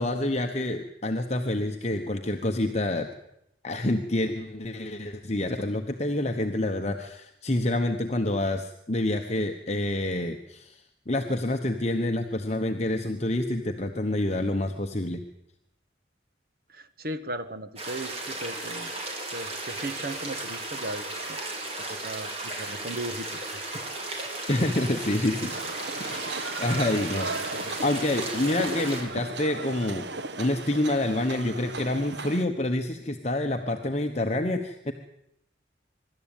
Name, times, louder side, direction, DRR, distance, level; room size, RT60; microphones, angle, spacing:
voice 1, 0.0-3.1 3.6-15.2 24.5-25.5 26.0-27.5 27.8-30.1 30.4-34.9, left 1 dB, 35° left, 5 dB, 1.1 m, -28 dB
voice 2, 16.7-18.9 19.3-23.8 24.2-24.3 27.5-27.7, right 1 dB, 55° right, 11 dB, 1.5 m, -37 dB
sound 1, 17.8-29.0, right 2 dB, 35° right, 4.6 m, -35 dB
sound 2, 25.5-32.4, right 3 dB, 75° right, 1.3 m, -36 dB
24.5 x 12.5 x 9.0 m, 0.81 s
head